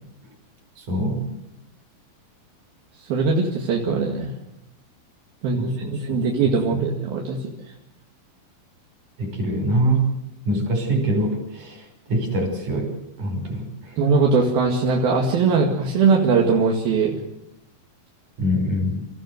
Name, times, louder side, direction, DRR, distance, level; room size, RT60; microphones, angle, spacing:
voice 1, 0.8-1.3 5.5-6.9 9.2-10.1 10.4-12.9 13.2-14.0 18.4-19.1, right 1 dB, 55° right, 4 dB, 6.9 m, -25 dB
voice 2, 3.0-4.3 5.4-7.4 14.0-17.2, right 4 dB, 75° right, -1 dB, 4.0 m, -20 dB
27.0 x 15.5 x 8.0 m, 0.85 s
omnidirectional pair, 4.4 m